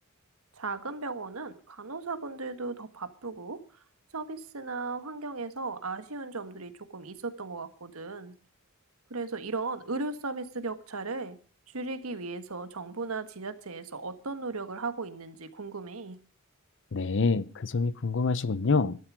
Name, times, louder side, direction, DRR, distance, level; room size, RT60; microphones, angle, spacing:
voice 1, 0.6-3.6 4.1-8.3 9.1-11.4 11.7-16.2, right 3 dB, 90° right, 1.5 m, -36 dB
voice 2, 16.9-19.0, left 4 dB, 60° left, 0.7 m, -26 dB
13.0 x 12.0 x 6.2 m
head